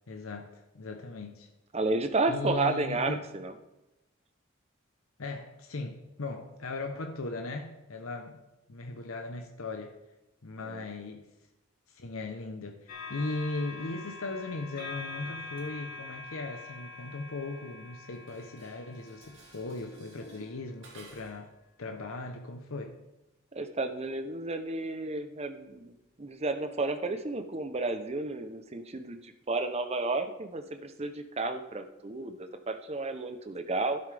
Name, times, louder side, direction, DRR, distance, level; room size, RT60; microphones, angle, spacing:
voice 1, 0.1-1.5 2.3-3.3 5.2-8.4 8.7-10.0 10.4-11.3 11.9-21.5 21.8-23.0, left 3 dB, 85° left, 0.9 m, -38 dB
voice 2, 1.7-3.5 10.6-10.8 23.5-34.0, right 3 dB, 30° right, 0.7 m, -32 dB
sound 1, 12.9-20.3 21.1-21.3, left 3 dB, 45° left, 2.5 m, -45 dB
Dishes pots and pans, 18.1-21.5, right 2 dB, 60° right, 2.8 m, -54 dB
12.0 x 11.0 x 3.4 m
head